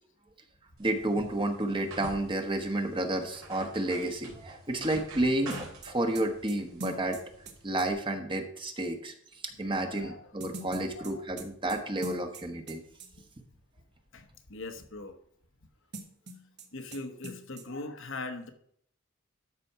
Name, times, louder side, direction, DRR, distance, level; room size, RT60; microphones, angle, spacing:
voice 1, 0.8-7.2 7.6-9.1 9.6-12.8, right 1 dB, 25° right, 5 dB, 1.2 m, -31 dB
sound 1, 0.8-7.9, right 2 dB, 80° right, 3.6 m, -48 dB
sound 2, 5.5-7.9 10.4-12.7 13.0-13.1 15.9-16.7 16.9-17.0 17.2-17.6, right 1 dB, 55° right, 1.4 m, -42 dB
voice 2, 9.8-10.4 10.9-11.2 13.2-13.3 14.1-15.2 16.7-18.5, left 2 dB, 65° left, 6 dB, 1.1 m, -41 dB
12.5 x 4.3 x 5.7 m, 0.64 s
head